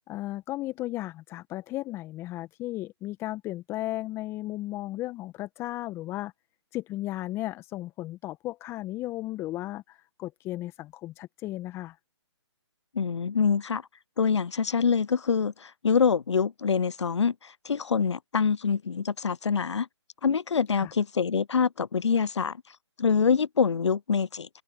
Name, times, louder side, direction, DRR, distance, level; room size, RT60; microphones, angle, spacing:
voice 1, 0.0-6.3 6.7-12.0 20.7-20.9, left 16 dB, 15° left, 1.3 m, -35 dB
voice 2, 12.9-13.8 14.2-19.9 20.2-22.6 23.0-24.5, left 6 dB, 80° left, 0.5 m, -25 dB
figure-of-eight pair, 140°, 15 cm